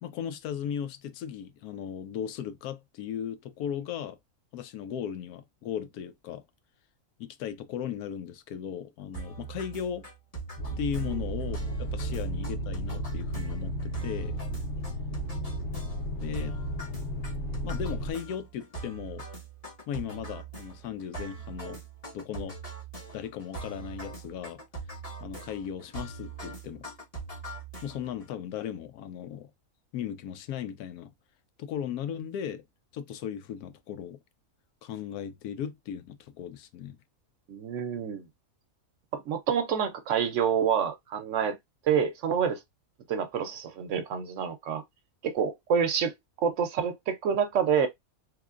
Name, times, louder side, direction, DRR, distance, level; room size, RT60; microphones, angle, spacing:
voice 1, 0.0-4.2 4.5-6.4 7.2-10.1 10.8-14.4 16.2-16.6 17.6-19.3 19.9-21.8 22.1-22.6 23.1-24.6 25.2-26.9 27.8-29.5 29.9-31.1 31.6-32.6 32.9-34.2 34.8-37.0, left 9 dB, 85° left, 1.1 m, -37 dB
sound 1, 9.1-28.2, right 4 dB, 25° left, 1.4 m, -42 dB
sound 2, 10.6-18.1, equal, 55° left, 1.2 m, -33 dB
voice 2, 37.5-38.3 39.1-41.6 41.8-42.6 43.1-44.8 45.2-47.9, right 7 dB, 65° right, 0.8 m, -27 dB
3.7 x 3.1 x 2.4 m
omnidirectional pair, 1.5 m